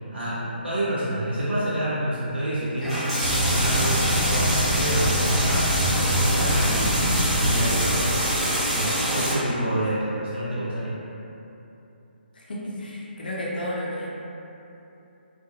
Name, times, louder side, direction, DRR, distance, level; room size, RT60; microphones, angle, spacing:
voice 1, 0.1-3.1 3.5-5.7 6.0-7.0 7.4-8.2 8.6-10.9, right 1 dB, 70° right, -10 dB, 0.7 m, -28 dB
sound 1, 2.8-9.3, equal, ahead, 0.4 m, -25 dB
sound 2, 3.2-9.4, equal, 20° left, 0.9 m, -26 dB
voice 2, 12.3-14.1, left 1 dB, 55° left, -4 dB, 0.4 m, -32 dB
2.6 x 2.2 x 2.5 m, 2.9 s
figure-of-eight pair, 140°, 6 cm